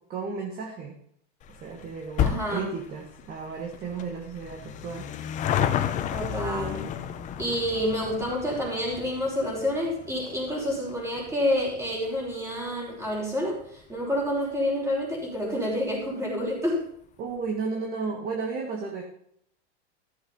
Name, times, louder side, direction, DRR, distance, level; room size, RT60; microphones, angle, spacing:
voice 1, 0.1-0.9 1.5-5.1 17.2-19.0, right 5 dB, 25° right, 2 dB, 1.8 m, -33 dB
sound 1, 1.4-14.2 14.5-14.6 15.4-15.5 15.7-15.8 16.1-16.2, left 10 dB, 20° left, 0.8 m, -33 dB
voice 2, 2.2-2.7 6.1-6.9 7.4-16.8, left 1 dB, 10° right, -3 dB, 5.3 m, -28 dB
14.5 x 7.2 x 5.6 m, 0.68 s
supercardioid pair, 140°, 34 cm